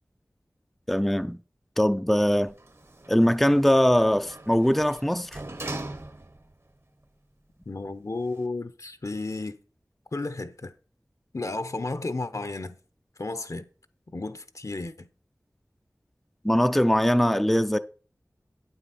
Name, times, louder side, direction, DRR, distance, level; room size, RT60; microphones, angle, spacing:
voice 1, 0.9-1.4 1.8-2.5 3.1-5.4 16.4-17.8, equal, 5° left, 0.4 m, -21 dB
Sliding door, 2.5-6.6 7.0-7.1, right 2 dB, 45° right, 1.0 m, -40 dB
voice 2, 7.7-9.6 10.1-10.7 11.3-12.8 13.2-13.7 14.1-15.1, left 2 dB, 60° left, 0.8 m, -33 dB
9.0 x 7.9 x 4.2 m
wide cardioid pair, 50°, 6 cm